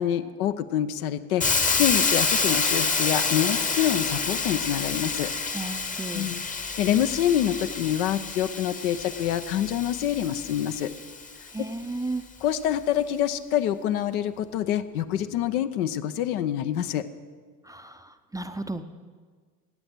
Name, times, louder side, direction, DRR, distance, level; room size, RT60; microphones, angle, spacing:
voice 1, 0.0-5.3 6.1-6.4 6.8-10.9 11.6-11.7 12.4-17.1, left 10 dB, 65° left, 11 dB, 0.9 m, -26 dB
Hiss, 1.4-11.3, left 4 dB, 15° left, 1.0 m, -28 dB
voice 2, 5.5-6.3 11.5-12.2 17.6-18.8, right 2 dB, 10° right, 8 dB, 0.6 m, -34 dB
15.0 x 9.7 x 6.2 m, 1.5 s
figure-of-eight pair, 65°, 46 cm